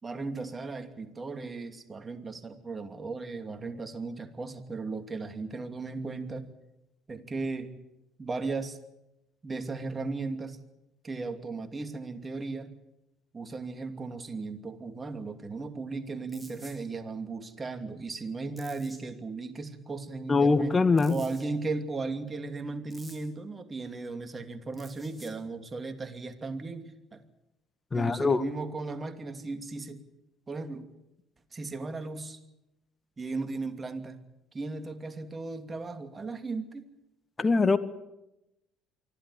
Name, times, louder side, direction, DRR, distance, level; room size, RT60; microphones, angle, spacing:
voice 1, 0.0-6.5 7.1-7.7 8.2-8.8 9.4-10.6 11.0-12.7 13.3-20.8 21.1-27.2 27.9-30.0 30.5-30.9 31.5-32.4 33.2-34.2 34.5-36.9, right 3 dB, 30° right, 8 dB, 2.8 m, -36 dB
sound 1, 16.3-16.8 18.6-19.0 21.0-21.4 22.9-23.3 24.7-25.3, right 1 dB, 5° right, 6.4 m, -51 dB
voice 2, 20.3-21.1 27.9-28.4 37.4-37.8, left 4 dB, 30° left, 13 dB, 1.7 m, -23 dB
24.5 x 15.0 x 9.9 m, 0.89 s
hypercardioid pair, 60°, 0 cm